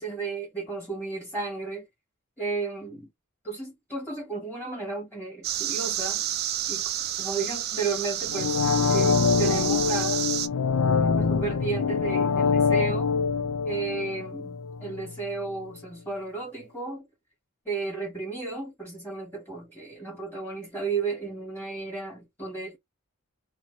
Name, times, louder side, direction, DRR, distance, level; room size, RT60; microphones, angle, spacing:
voice 1, 0.0-1.9 2.4-3.1 3.4-6.2 6.7-6.9 7.2-8.6 8.9-10.2 11.2-13.1 13.6-14.5 14.8-17.1 17.6-22.8, right 4 dB, 10° left, 1.6 m, -33 dB
sound 1, 5.4-10.5, right 12 dB, 45° right, 0.4 m, -30 dB
sound 2, 8.3-15.1 15.5-15.6, left 5 dB, 80° left, 0.5 m, -24 dB
3.1 x 2.1 x 4.0 m
head